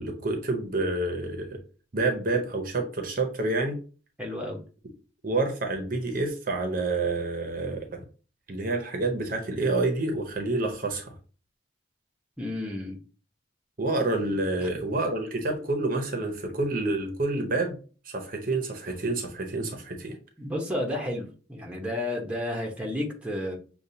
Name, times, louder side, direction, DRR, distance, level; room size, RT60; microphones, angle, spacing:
voice 1, 0.0-1.6 1.9-3.8 5.2-8.0 8.5-11.1 13.8-17.8 18.1-20.2, right 2 dB, 45° right, 0.8 m, -28 dB
voice 2, 4.2-4.6 12.4-13.0 14.6-14.7 20.4-23.6, left 1 dB, 5° right, 0.9 m, -32 dB
6.5 x 2.3 x 2.7 m
head